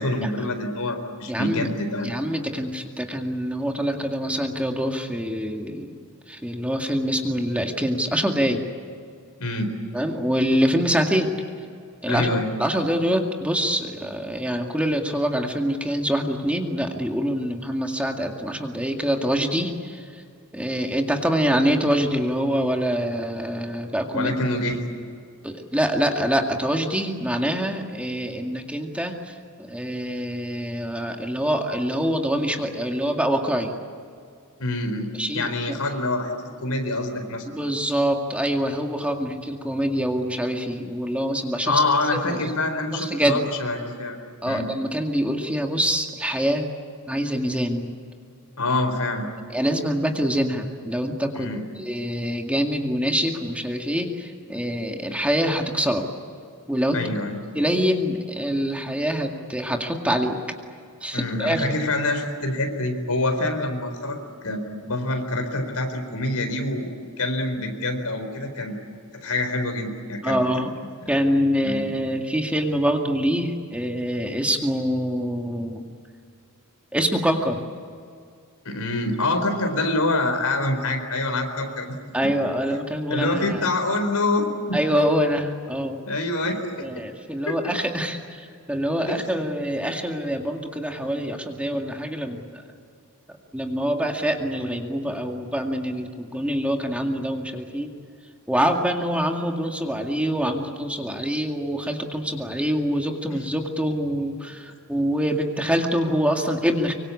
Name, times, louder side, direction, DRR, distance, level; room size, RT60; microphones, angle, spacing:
voice 1, 0.0-2.1 9.4-9.8 12.1-12.5 24.1-24.9 34.6-36.3 36.6-37.5 41.7-44.2 44.5-44.7 48.6-49.3 51.3-51.6 56.9-57.4 61.1-68.8 69.1-70.7 71.0-71.1 71.6-71.8 78.6-82.0 83.1-84.8 86.0-86.9 87.5-87.7 89.1-89.2 103.3-103.4, left 2 dB, 80° left, 6 dB, 4.2 m, -26 dB
voice 2, 1.3-1.7 2.0-8.6 9.9-11.3 12.0-12.3 12.6-20.2 20.5-24.3 25.4-33.7 35.1-35.8 37.5-41.8 42.1-42.4 42.9-43.4 44.4-46.7 47.1-47.9 49.5-51.5 51.8-56.1 56.7-57.0 57.5-60.4 61.0-61.7 70.2-70.7 71.1-75.9 76.9-77.6 82.1-83.7 84.7-86.0 86.8-92.6 93.3-97.9 98.5-106.9, equal, 5° right, 2 dB, 2.1 m, -25 dB
25.0 x 24.5 x 8.5 m, 2.3 s
head